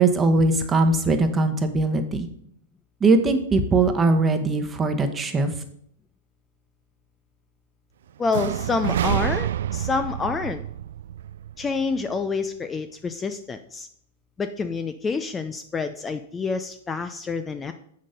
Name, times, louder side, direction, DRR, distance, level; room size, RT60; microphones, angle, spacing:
voice 1, 0.0-2.3 3.0-5.5, right 3 dB, 20° right, 6 dB, 1.1 m, -20 dB
voice 2, 8.2-10.6 11.6-13.9 14.4-17.7, left 4 dB, 15° left, 9 dB, 0.5 m, -28 dB
sound 1, 8.3-12.2, right 11 dB, 70° right, 0.3 m, -28 dB
7.3 x 6.4 x 5.2 m, 0.67 s
hypercardioid pair, 110°, 0 cm